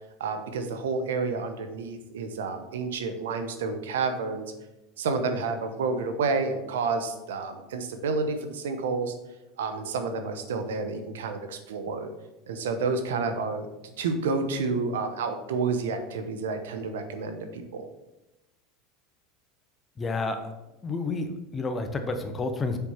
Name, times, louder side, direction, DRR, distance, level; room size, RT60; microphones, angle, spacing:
voice 1, 0.2-4.4 5.0-9.1 9.6-12.1 12.5-13.7 14.0-17.9, right 4 dB, 90° right, 7 dB, 1.0 m, -30 dB
voice 2, 20.0-20.5 20.8-22.8, left 3 dB, 25° left, 6 dB, 1.0 m, -30 dB
6.9 x 4.6 x 5.7 m, 0.99 s
supercardioid pair, 110°, 0 cm